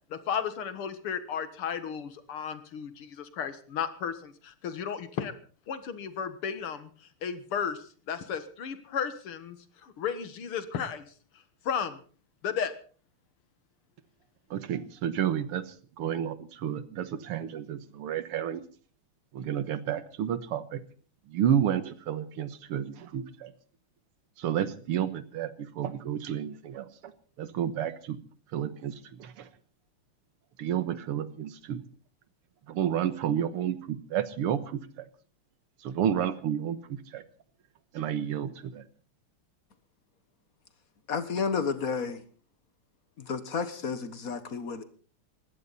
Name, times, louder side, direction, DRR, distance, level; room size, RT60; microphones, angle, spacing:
voice 1, 0.1-5.3 5.7-6.9 7.2-9.6 9.8-11.1 11.6-12.0 12.4-12.7, left 7 dB, 75° left, 11 dB, 2.4 m, -34 dB
voice 2, 14.5-18.6 19.3-20.8 21.3-23.5 24.4-27.1 27.4-28.2 28.5-29.5 30.6-31.8 32.7-35.1 35.8-37.2 37.9-38.8, right 9 dB, 90° right, 13 dB, 2.1 m, -31 dB
voice 3, 41.1-42.2 43.3-44.8, left 5 dB, 45° left, 12 dB, 1.6 m, -31 dB
20.5 x 15.5 x 4.2 m, 0.41 s
omnidirectional pair, 2.4 m